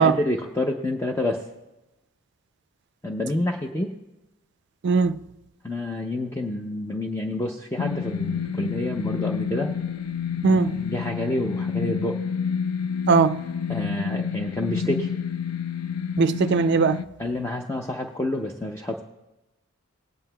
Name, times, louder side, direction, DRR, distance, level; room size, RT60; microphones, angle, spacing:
voice 1, 0.0-1.4 3.0-3.9 5.6-9.7 10.5-12.2 13.7-15.1 17.2-19.0, left 1 dB, 10° left, 0.5 m, -28 dB
voice 2, 4.8-5.2 10.4-10.8 13.1-13.4 16.2-17.0, right 5 dB, 50° right, 0.4 m, -19 dB
sound 1, 7.8-17.0, left 7 dB, 90° left, 0.4 m, -29 dB
20.5 x 9.1 x 2.2 m
head